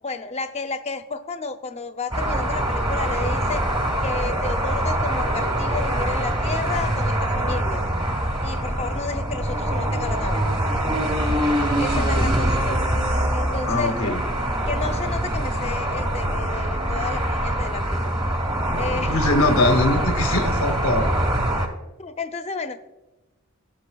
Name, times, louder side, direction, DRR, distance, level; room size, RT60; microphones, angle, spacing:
voice 1, 0.0-3.6 4.0-7.8 8.4-10.4 11.8-12.8 13.3-13.9 14.7-18.1 18.8-19.2 22.0-22.8, left 4 dB, 30° left, 8 dB, 0.5 m, -32 dB
sound 1, 2.1-21.7, right 1 dB, 25° right, 1.1 m, -24 dB
voice 2, 11.9-12.3 13.7-14.2 18.7-21.1, left 2 dB, 85° left, 6 dB, 0.8 m, -23 dB
17.0 x 6.2 x 2.3 m, 1.1 s
head